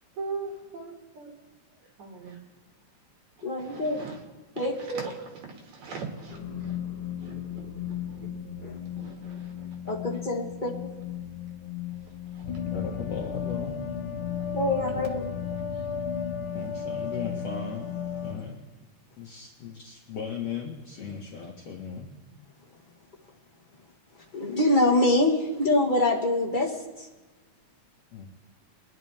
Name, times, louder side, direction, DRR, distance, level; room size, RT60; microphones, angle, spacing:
voice 1, 0.1-2.4 3.4-4.2 4.5-6.8 7.2-8.3 8.9-10.0 12.2-12.6 14.8-15.2, right 4 dB, 70° right, 0 dB, 3.6 m, -41 dB
voice 2, 3.4-4.0 4.6-5.0 8.6-8.8 9.8-10.7 14.5-15.2 24.3-27.1, left 1 dB, 25° left, -1 dB, 1.1 m, -25 dB
sound 1, 6.3-18.3, left 8 dB, 80° left, 2.7 m, -34 dB
voice 3, 12.7-13.8 14.9-15.0 16.5-17.9 18.2-18.6 19.2-22.1 28.1-28.3, left 6 dB, 55° left, -2 dB, 2.3 m, -36 dB
22.5 x 11.0 x 3.5 m, 1.2 s
omnidirectional pair, 3.5 m